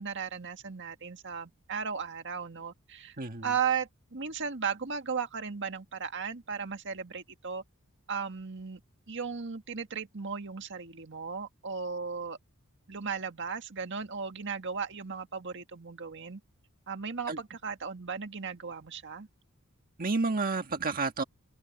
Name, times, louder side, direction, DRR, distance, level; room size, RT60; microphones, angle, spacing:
voice 1, 0.0-3.2 3.4-7.6 8.1-8.8 9.1-12.4 12.9-16.4 16.9-19.3, right 6 dB, 60° right, 1.7 m, -36 dB
voice 2, 20.0-21.2, right 3 dB, 40° right, 1.5 m, -30 dB
head